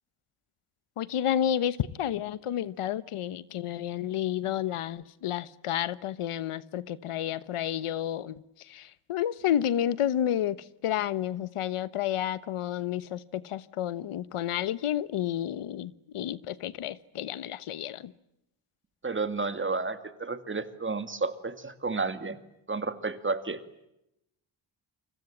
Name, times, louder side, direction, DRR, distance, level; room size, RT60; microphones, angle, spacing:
voice 1, 1.0-8.4 8.7-18.1, left 10 dB, 85° left, 1.2 m, -31 dB
voice 2, 19.0-22.4 22.7-23.6, right 4 dB, 25° right, 2.2 m, -31 dB
30.0 x 25.0 x 7.4 m
wide cardioid pair, 130°, 50 cm